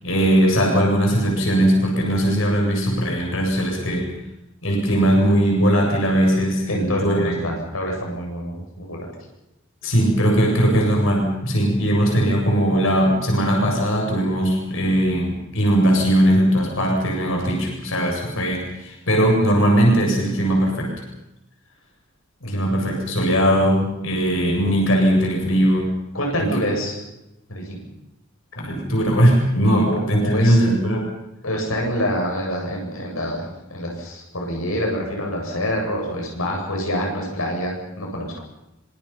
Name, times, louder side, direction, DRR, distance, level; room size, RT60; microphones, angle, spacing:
voice 1, 0.0-4.1 4.6-7.3 9.8-20.9 22.5-25.9 26.4-26.5 28.6-31.1, equal, 70° left, 0 dB, 7.6 m, -19 dB
voice 2, 6.7-9.1 22.4-22.9 26.1-27.0 27.5-27.9 29.9-30.6 31.4-38.3, equal, 90° left, 0 dB, 7.9 m, -26 dB
26.0 x 26.0 x 5.9 m, 0.89 s
head